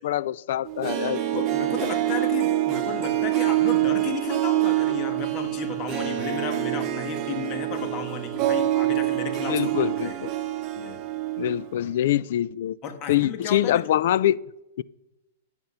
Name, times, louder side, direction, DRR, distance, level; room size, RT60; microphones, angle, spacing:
voice 1, 0.0-1.5 9.5-10.3 11.4-12.8 13.1-14.4 14.8-14.9, left 12 dB, 60° left, 0.3 m, -24 dB
Harp, 0.7-11.7 11.9-12.0, right 14 dB, 30° right, 1.1 m, -26 dB
voice 2, 1.3-10.2 10.8-11.0 12.8-13.8, left 6 dB, 30° left, 1.4 m, -34 dB
10.5 x 7.9 x 5.5 m
hypercardioid pair, 150°, 0 cm